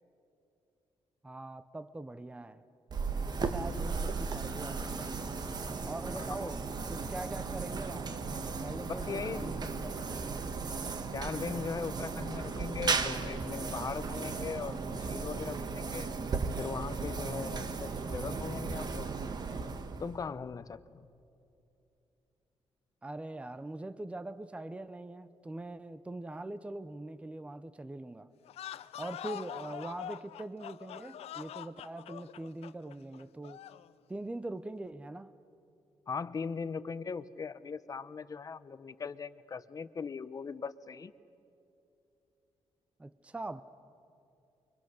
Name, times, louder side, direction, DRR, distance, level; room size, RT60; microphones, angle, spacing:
voice 1, 1.2-2.6 3.3-5.4 5.8-8.3 8.6-10.4 23.0-28.3 28.9-33.6 34.1-35.3 43.0-43.6, right 2 dB, 10° right, 13 dB, 0.7 m, -42 dB
sound 1, 2.9-20.3, right 4 dB, 40° right, 1.4 m, -36 dB
voice 2, 6.1-6.5 8.8-9.5 11.1-16.1 16.6-19.1 20.0-21.1 36.1-41.1, left 5 dB, 35° left, 14 dB, 0.8 m, -39 dB
sound 2, 28.4-33.9, left 11 dB, 80° left, 0.6 m, -44 dB
29.0 x 24.0 x 6.5 m, 2.7 s
cardioid pair, 120°, 10 cm